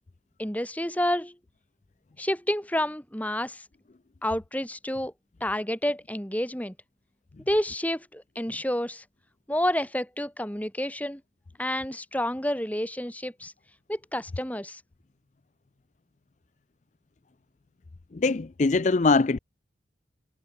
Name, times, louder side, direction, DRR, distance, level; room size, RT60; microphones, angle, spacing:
voice 1, 0.4-1.3 2.2-3.6 4.2-5.1 5.4-6.7 7.5-9.0 9.5-11.2 11.6-13.5 13.9-14.8, left 1 dB, 10° left, 3.1 m, -29 dB
voice 2, 18.1-19.4, left 3 dB, 40° left, 0.5 m, -22 dB
head